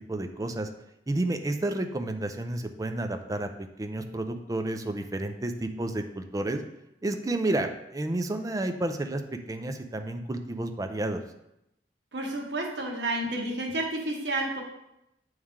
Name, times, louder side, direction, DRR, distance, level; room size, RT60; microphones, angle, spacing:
voice 1, 0.1-0.7 1.1-3.5 3.8-6.6 7.0-9.2 9.5-11.2, right 2 dB, 20° right, 6 dB, 0.4 m, -30 dB
voice 2, 12.1-14.6, right 2 dB, 75° right, 0 dB, 1.2 m, -30 dB
8.4 x 3.2 x 3.6 m, 0.85 s
head